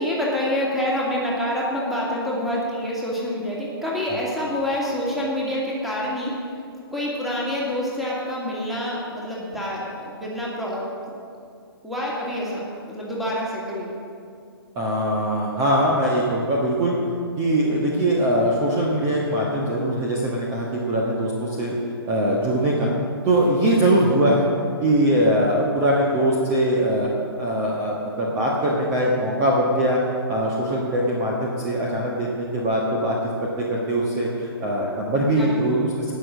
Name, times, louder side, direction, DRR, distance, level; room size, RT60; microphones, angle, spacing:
voice 1, 0.0-6.3 6.9-10.9 11.8-13.9 22.8-22.9 35.4-35.6, left 1 dB, ahead, -6 dB, 2.3 m, -27 dB
voice 2, 14.7-17.0 17.4-21.8 22.1-22.9 23.2-24.5 24.8-27.1 27.4-30.0 30.3-33.2 33.4-36.1, right 1 dB, 20° right, -3 dB, 1.4 m, -22 dB
18.5 x 6.4 x 6.2 m, 2.4 s
figure-of-eight pair, 125°, 13 cm